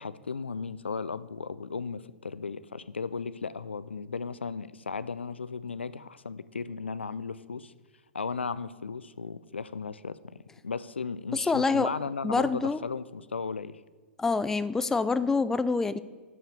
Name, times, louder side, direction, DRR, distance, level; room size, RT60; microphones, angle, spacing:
voice 1, 0.0-7.7 8.1-10.2 10.6-13.8, left 5 dB, 85° left, 16 dB, 0.4 m, -35 dB
voice 2, 11.3-11.9 12.2-12.8 14.2-16.0, left 4 dB, 5° left, 14 dB, 0.3 m, -26 dB
7.0 x 6.4 x 6.7 m, 1.4 s
figure-of-eight pair, 110°, 6 cm